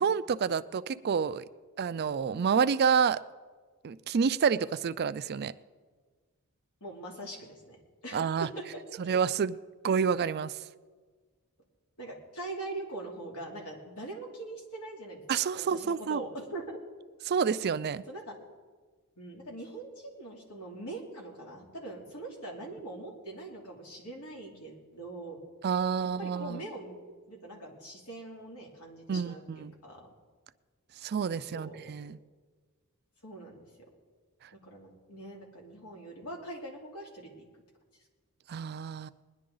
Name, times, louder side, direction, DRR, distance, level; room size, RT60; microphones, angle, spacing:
voice 1, 0.0-1.4 1.8-3.2 3.8-5.5 8.1-8.5 9.0-9.6 9.8-10.5 15.3-16.2 17.3-18.0 25.6-26.6 29.1-29.7 31.0-32.2 38.5-39.1, right 6 dB, 45° right, 15 dB, 0.4 m, -28 dB
voice 2, 6.8-8.8 12.0-15.2 15.5-16.8 18.1-18.3 19.2-25.4 26.0-27.0 27.3-30.1 31.3-31.9 33.2-33.9 34.5-37.5, right 2 dB, 85° left, -1 dB, 2.8 m, -42 dB
20.5 x 10.5 x 3.9 m, 1.4 s
head